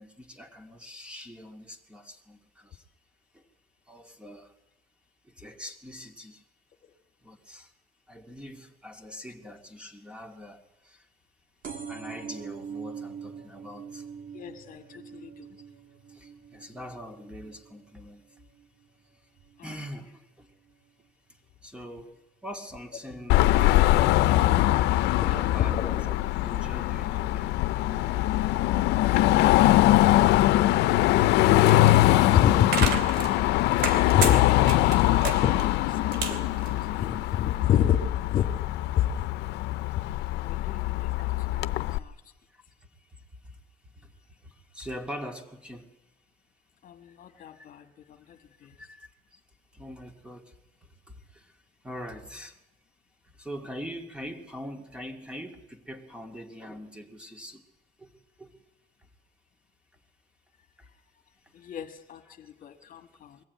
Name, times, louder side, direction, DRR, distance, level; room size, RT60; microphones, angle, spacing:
voice 1, 0.0-2.8 3.3-3.4 3.9-4.5 5.4-6.4 7.2-7.7 8.1-11.0 11.9-14.0 16.1-18.2 19.6-20.5 21.6-23.8 25.2-26.1 26.4-28.2 34.3-34.7 44.4-45.9 47.6-47.7 48.8-49.1 49.7-50.5 51.3-51.4 51.8-52.5 53.4-57.6 58.0-58.1 58.4-58.5, equal, 5° right, 5 dB, 2.4 m, -43 dB
sound 1, 11.6-18.9 19.4-19.8 20.7-20.8 21.0-21.1 21.3-21.4, right 6 dB, 55° right, 2.6 m, -43 dB
voice 2, 14.3-15.6 19.6-19.7 25.0-25.9 32.1-32.9 33.9-34.4 35.4-36.1 36.6-38.5 38.9-39.3 40.4-42.1 46.8-48.7 61.5-63.4, left 10 dB, 55° left, 6 dB, 1.5 m, -29 dB
Car passing by / Traffic noise roadway noise / Engine, 23.3-42.0, left 16 dB, 85° left, 0.7 m, -22 dB
sound 2, 32.1-37.4, right 5 dB, 75° right, 2.9 m, -33 dB
22.0 x 15.0 x 9.5 m, 1.0 s
cardioid pair, 110°, 17 cm